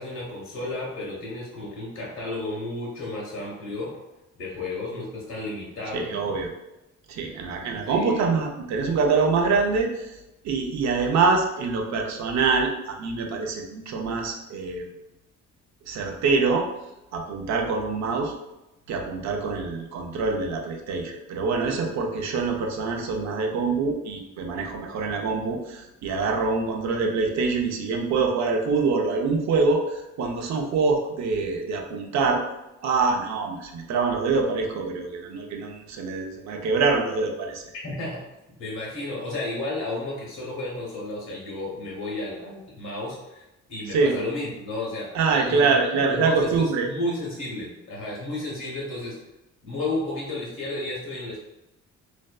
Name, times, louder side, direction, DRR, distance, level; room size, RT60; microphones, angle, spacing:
voice 1, 0.0-3.9 4.4-6.3 7.8-8.4 37.8-38.2 38.6-43.4 43.7-45.8 46.1-49.2 49.6-51.4, left 2 dB, 65° left, -5 dB, 0.9 m, -32 dB
voice 2, 5.9-6.5 7.1-10.1 10.4-14.8 15.9-16.7 17.1-18.3 18.9-32.4 32.8-37.6 43.9-44.1 45.1-46.9, right 4 dB, 65° right, 2 dB, 0.5 m, -25 dB
2.5 x 2.2 x 2.2 m, 0.96 s
cardioid pair, 90°, 30 cm